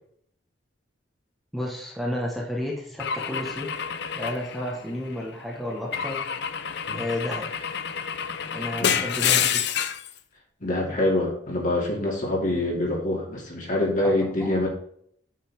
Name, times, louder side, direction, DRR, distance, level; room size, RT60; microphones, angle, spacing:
voice 1, 1.5-3.7 4.1-6.2 6.9-7.4 8.5-9.6 10.8-11.0 14.0-14.5, left 1 dB, ahead, -3 dB, 1.4 m, -32 dB
Car / Engine / Glass, 3.0-5.2 5.9-10.1, left 8 dB, 60° left, 0.6 m, -28 dB
voice 2, 10.6-14.7, left 1 dB, 45° left, -1 dB, 2.6 m, -25 dB
8.7 x 5.5 x 3.6 m, 0.64 s
head